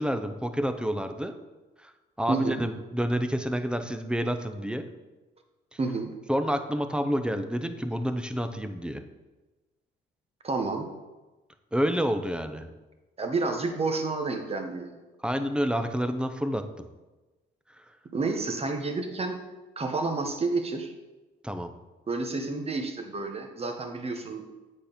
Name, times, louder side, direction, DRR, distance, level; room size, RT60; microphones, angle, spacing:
voice 1, 0.0-1.4 1.8-1.9 2.2-4.9 5.7-5.8 6.3-9.0 11.7-12.7 15.2-16.9 21.4-21.7, equal, 5° right, 8 dB, 0.6 m, -29 dB
voice 2, 2.3-2.6 5.8-6.1 10.4-10.9 13.2-14.9 18.1-19.4 19.8-20.9 22.1-24.5, right 3 dB, 30° right, 5 dB, 1.1 m, -30 dB
8.0 x 4.3 x 5.2 m, 1.2 s
cardioid pair, 90°, 20 cm